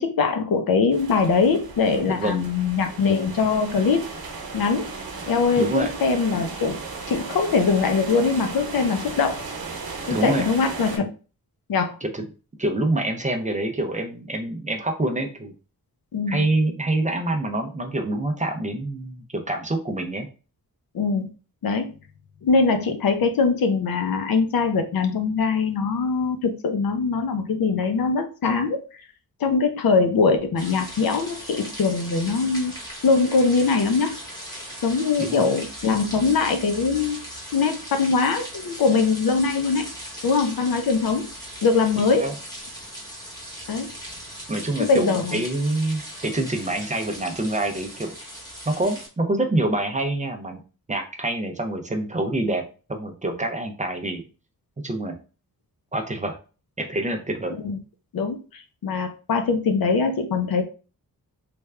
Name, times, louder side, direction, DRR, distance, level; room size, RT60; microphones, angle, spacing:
voice 1, 0.0-4.1 4.5-4.9 5.3-6.8 7.1-9.4 10.1-11.1 11.7-12.0 16.1-16.4 20.9-21.3 21.6-21.9 22.4-28.8 29.4-32.8 33.0-34.2 34.8-37.2 37.5-39.9 40.2-41.3 41.6-42.3 43.7-43.9 44.8-45.4 57.6-57.8 58.1-60.6, left 4 dB, 75° left, 6 dB, 0.7 m, -22 dB
sound 1, 0.9-11.0, right 4 dB, 85° right, 1.0 m, -36 dB
voice 2, 5.6-5.9 10.1-10.5 12.0-12.2 12.6-15.5 16.3-20.3 35.2-35.5 42.2-42.3 44.5-48.1 48.7-50.6 50.9-52.6 52.9-54.2 54.8-55.2 55.9-56.4 56.8-57.6, right 2 dB, 20° right, 3 dB, 0.4 m, -26 dB
sound 2, 30.6-49.1, equal, 10° left, 1.0 m, -38 dB
3.4 x 2.3 x 3.2 m, 0.34 s
wide cardioid pair, 165°, 36 cm